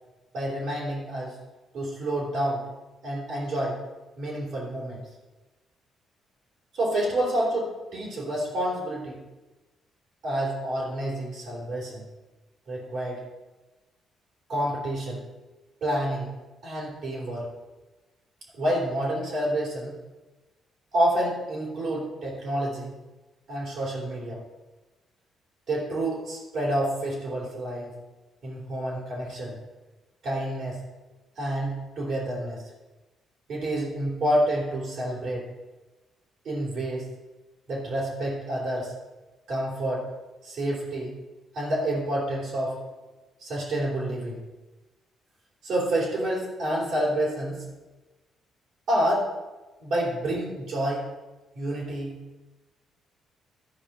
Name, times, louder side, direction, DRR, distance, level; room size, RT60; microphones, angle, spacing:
voice 1, 0.3-1.4 1.7-2.7 3.0-3.8 4.2-5.0 6.7-9.2 10.2-12.1 12.7-13.2 14.5-15.2 15.8-16.4 16.6-17.5 18.5-19.9 20.9-22.9 23.5-24.4 25.7-27.9 28.4-29.6 30.2-30.8 31.4-32.6 33.5-35.5 36.4-37.1 37.7-38.9 39.5-40.1 40.4-41.2 41.5-42.8 43.4-44.4 45.6-47.6 48.9-49.3 49.8-51.0 51.5-52.1, right 1 dB, 65° right, -6 dB, 3.5 m, -28 dB
12.0 x 5.0 x 5.6 m, 1.2 s
cardioid pair, 90°, 0 cm